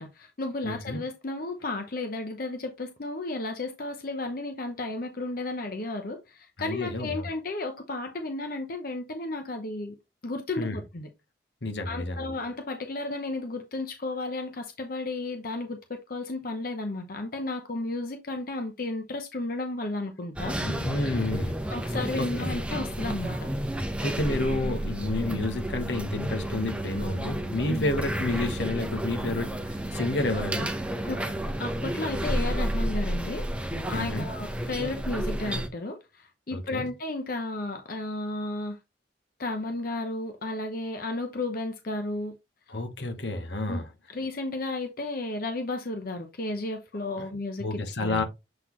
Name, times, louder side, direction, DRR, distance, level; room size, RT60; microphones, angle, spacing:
voice 1, 0.0-9.9 10.2-11.1 11.8-20.6 21.7-23.5 27.7-27.9 31.1-31.2 31.6-38.8 39.4-42.3 43.7-43.8 44.1-48.2, left 2 dB, 50° left, 0.8 m, -33 dB
voice 2, 0.6-1.0 6.6-7.3 10.6-10.8 11.6-12.3 20.6-21.6 22.2-22.5 24.0-30.7 33.9-34.2 36.5-36.8 42.7-43.9 47.2-47.3 47.6-48.2, left 2 dB, 70° left, 1.2 m, -30 dB
sound 1, 20.4-35.7, right 1 dB, 5° right, 0.8 m, -31 dB
7.5 x 4.1 x 3.0 m
head